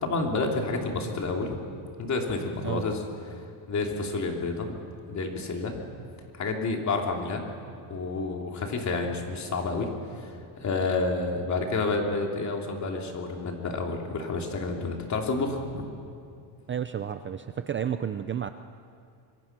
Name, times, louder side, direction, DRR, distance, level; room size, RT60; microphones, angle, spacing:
voice 1, 0.0-1.6 2.0-3.0 3.7-4.8 5.1-5.8 6.3-7.4 7.9-9.9 10.1-15.8, left 3 dB, 35° left, 1 dB, 3.3 m, -29 dB
voice 2, 16.7-18.5, right 8 dB, 25° right, 9 dB, 0.5 m, -31 dB
25.5 x 23.5 x 6.1 m, 2.4 s
cardioid pair, 140°, 49 cm